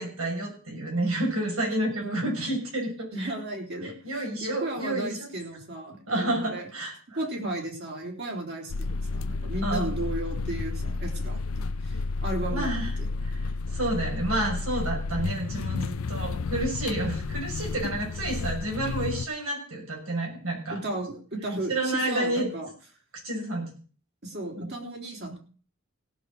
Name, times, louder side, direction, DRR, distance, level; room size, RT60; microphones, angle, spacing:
voice 1, 0.0-3.3 3.8-5.3 6.1-7.2 9.6-9.9 12.5-12.9 13.2-13.4 13.7-20.8 21.7-22.5 23.2-23.7 24.6-24.7, right 1 dB, 85° right, 1 dB, 6.3 m, -30 dB
voice 2, 2.0-2.3 3.1-3.9 4.4-6.7 7.1-13.1 20.7-22.7 24.2-25.4, right 1 dB, 55° right, 2 dB, 3.4 m, -34 dB
sound 1, 8.7-19.3, left 3 dB, 85° left, 0.5 m, -31 dB
17.0 x 6.6 x 6.4 m, 0.40 s
head